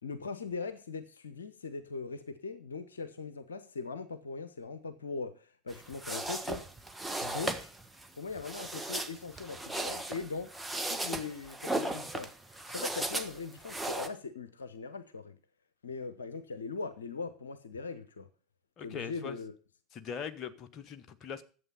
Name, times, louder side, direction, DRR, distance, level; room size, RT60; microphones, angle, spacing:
voice 1, 0.0-6.6 7.2-7.7 8.2-10.5 10.9-12.3 12.7-15.4 15.8-18.3 18.8-19.5, left 4 dB, 80° left, 0.8 m, -40 dB
sound 1, 5.7-14.1, right 2 dB, 5° right, 1.4 m, -37 dB
voice 2, 18.8-19.3 19.9-21.4, left 7 dB, 40° left, 1.1 m, -41 dB
11.0 x 7.8 x 5.5 m
figure-of-eight pair, 75°, 0 cm